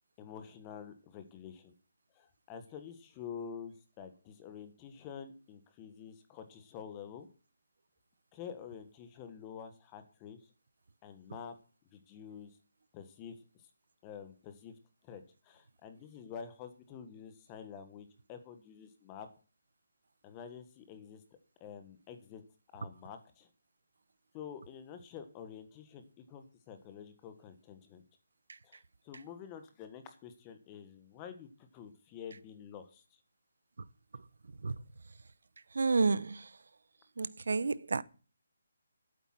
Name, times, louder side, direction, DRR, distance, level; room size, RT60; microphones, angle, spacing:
voice 1, 0.2-1.7 2.1-7.3 8.3-10.5 11.0-11.5 11.9-12.6 12.9-13.4 14.0-14.8 15.0-19.3 20.2-21.2 21.6-22.4 22.7-23.5 24.3-28.0 28.6-33.2, left 7 dB, 20° left, 1.4 m, -48 dB
voice 2, 35.7-36.5 37.2-38.0, right 4 dB, 70° right, 0.9 m, -30 dB
12.0 x 8.7 x 6.0 m
hypercardioid pair, 165°, 0 cm